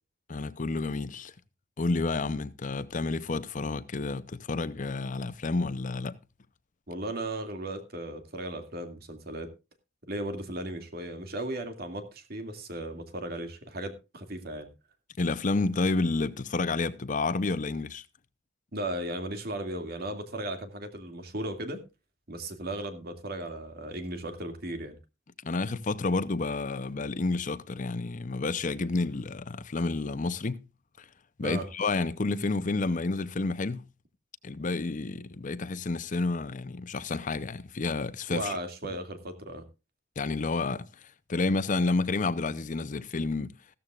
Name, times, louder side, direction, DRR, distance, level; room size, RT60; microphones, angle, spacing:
voice 1, 0.3-1.3 1.8-6.2 15.2-18.0 25.4-30.6 31.4-33.8 34.4-38.6 40.2-40.8 41.3-43.5, left 3 dB, 40° left, 0.6 m, -30 dB
voice 2, 6.9-9.5 10.1-14.7 18.7-21.8 22.3-24.9 31.4-31.7 38.3-39.7, right 1 dB, 55° right, 2.3 m, -36 dB
15.0 x 13.5 x 2.4 m
head